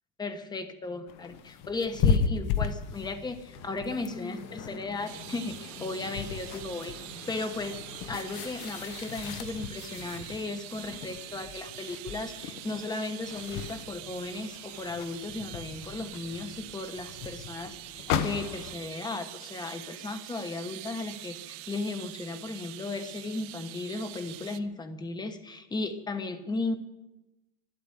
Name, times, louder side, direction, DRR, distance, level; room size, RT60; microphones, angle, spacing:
voice 1, 0.2-6.9 7.3-7.8 8.1-26.8, left 3 dB, 10° left, 8 dB, 1.1 m, -36 dB
sound 1, 1.1-18.8, left 6 dB, 50° left, 1.1 m, -35 dB
sound 2, 3.5-8.6, left 3 dB, 90° left, 3.9 m, -47 dB
sound 3, 5.1-24.6, right 16 dB, 60° right, 0.9 m, -44 dB
12.5 x 11.5 x 9.9 m, 1.0 s
supercardioid pair, 155°, 41 cm